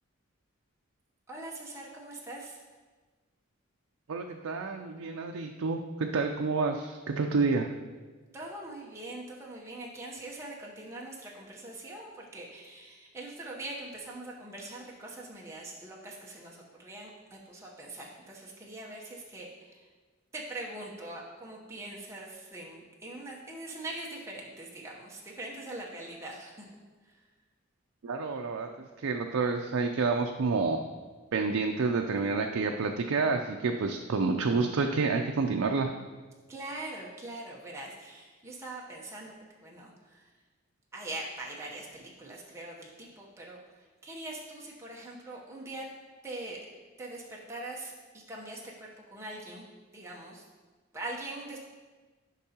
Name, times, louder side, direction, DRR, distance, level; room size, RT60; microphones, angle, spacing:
voice 1, 1.3-2.6 8.3-19.9 20.3-26.7 27.0-27.2 36.5-39.3 39.6-40.3 40.9-45.8 46.2-46.6 47.0-49.7 49.9-50.4 50.9-51.6, right 2 dB, 15° right, -4 dB, 0.8 m, -42 dB
voice 2, 4.1-7.7 28.0-28.7 29.0-30.8 31.3-35.9, right 4 dB, 85° right, 3 dB, 0.4 m, -29 dB
12.0 x 5.4 x 2.9 m, 1.4 s
head